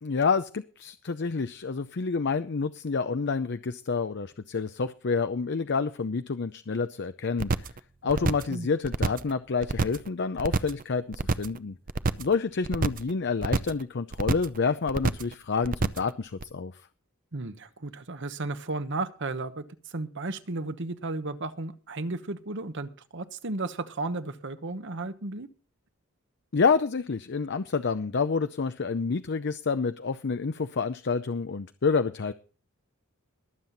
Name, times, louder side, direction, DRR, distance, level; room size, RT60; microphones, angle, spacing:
voice 1, 0.0-7.7 8.0-11.8 12.2-16.7 26.5-32.3, left 5 dB, 55° left, 10 dB, 0.6 m, -28 dB
sound 1, 7.4-7.8 8.1-8.5 8.8-9.3 9.6-10.1 10.4-10.8 11.1-11.6 11.9-12.3 12.6-13.1 13.4-13.8 14.1-14.6 14.9-15.3 15.6-16.1 16.4-16.5, right 3 dB, 40° right, 0.6 m, -27 dB
voice 2, 8.1-8.7 17.3-25.5, right 2 dB, 55° right, 11 dB, 1.1 m, -34 dB
22.0 x 7.6 x 4.1 m, 0.36 s
head